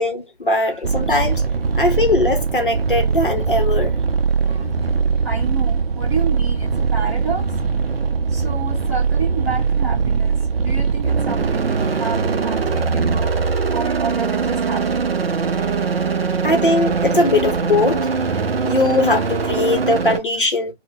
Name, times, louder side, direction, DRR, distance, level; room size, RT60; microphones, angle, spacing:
voice 1, 0.0-1.4 1.8-4.0 4.6-5.0 16.4-18.1 18.6-20.7, left 2 dB, 50° left, 0.7 m, -20 dB
sound 1, 0.8-20.2, right 5 dB, 60° right, 0.5 m, -21 dB
voice 2, 4.4-4.9 5.2-7.7 8.3-13.4 13.7-15.0, right 5 dB, 15° right, 1.0 m, -31 dB
2.6 x 2.1 x 3.6 m
figure-of-eight pair, 160°, 34 cm